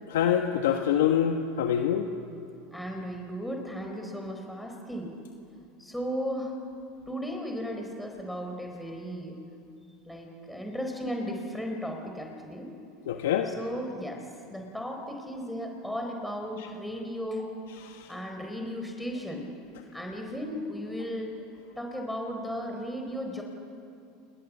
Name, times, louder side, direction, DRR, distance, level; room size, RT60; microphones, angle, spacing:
voice 1, 0.1-2.1 13.1-13.5 17.9-18.1, left 9 dB, 85° left, 4 dB, 1.5 m, -25 dB
voice 2, 2.7-5.1 5.8-6.6 7.1-9.3 10.1-12.7 13.5-14.2 14.5-17.5 18.1-19.5 19.9-21.3 21.8-23.4, equal, 5° left, 1 dB, 4.1 m, -35 dB
29.0 x 28.0 x 7.4 m, 2.6 s
supercardioid pair, 110°, 0 cm